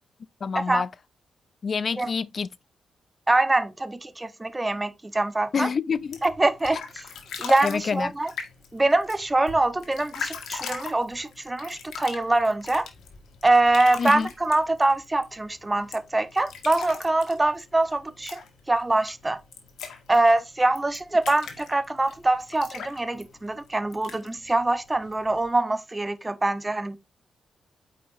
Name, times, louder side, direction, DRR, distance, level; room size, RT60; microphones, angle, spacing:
voice 1, 0.4-0.9 1.6-2.5 5.5-6.2 7.6-8.1 14.0-14.3, left 5 dB, 55° left, 0.4 m, -27 dB
voice 2, 3.3-5.7 6.2-7.0 7.4-8.3 8.7-12.9 13.4-18.4 18.7-19.4 20.1-27.0, right 2 dB, 20° right, 1.0 m, -24 dB
sound 1, 6.0-25.5, left 6 dB, 85° left, 1.8 m, -41 dB
8.6 x 5.4 x 2.7 m
cardioid pair, 75°, 0 cm